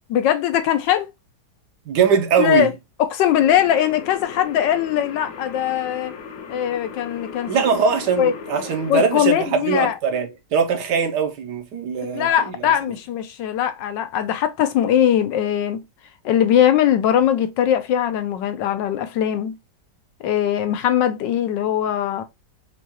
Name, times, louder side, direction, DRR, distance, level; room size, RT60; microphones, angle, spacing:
voice 1, 0.1-1.1 2.4-2.7 3.0-6.1 6.5-7.5 8.2-8.3 8.9-9.9 12.1-15.8 16.2-19.6 20.2-22.2, left 10 dB, 80° left, 1.3 m, -20 dB
voice 2, 1.9-2.7 7.5-12.7, right 6 dB, 70° right, 1.4 m, -21 dB
sound 1, 3.2-8.9, left 6 dB, 60° left, 0.9 m, -37 dB
6.0 x 2.4 x 2.9 m
omnidirectional pair, 1.9 m